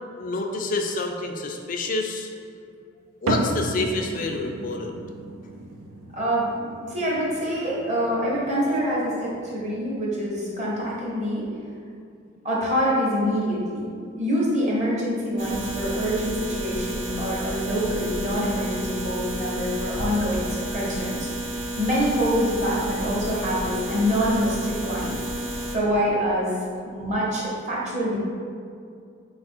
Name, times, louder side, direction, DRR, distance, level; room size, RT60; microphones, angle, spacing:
voice 1, 0.2-2.3 3.2-4.9, left 3 dB, 40° left, 3 dB, 0.4 m, -28 dB
sound 1, 3.3-10.0, right 2 dB, 85° right, 0.4 m, -34 dB
voice 2, 6.1-11.5 12.4-13.9 14.2-21.3 21.8-25.2 25.7-26.5 26.8-28.2, equal, 35° right, -5 dB, 0.9 m, -25 dB
sound 2, 15.4-25.8, right 1 dB, 65° right, 0.7 m, -31 dB
4.2 x 2.4 x 4.3 m, 2.4 s
head